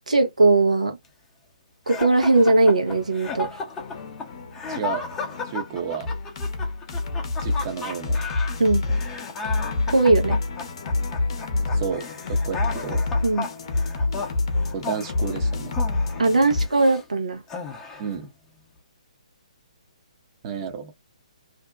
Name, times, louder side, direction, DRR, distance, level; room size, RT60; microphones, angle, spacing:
voice 1, 0.1-1.0 1.9-3.5 8.6-8.8 9.9-10.4 13.2-13.5 16.2-17.4, right 2 dB, 80° right, 0.8 m, -19 dB
sound 1, 1.9-17.0 17.5-18.2, left 4 dB, 15° left, 0.7 m, -34 dB
sound 2, 2.6-16.7, left 3 dB, 45° left, 0.7 m, -28 dB
voice 2, 4.7-5.0 5.4-6.1 7.4-8.2 11.7-13.0 14.7-15.7 18.0-18.3 20.4-20.9, right 7 dB, 35° right, 0.7 m, -31 dB
2.6 x 2.1 x 2.3 m
figure-of-eight pair, 135°, 4 cm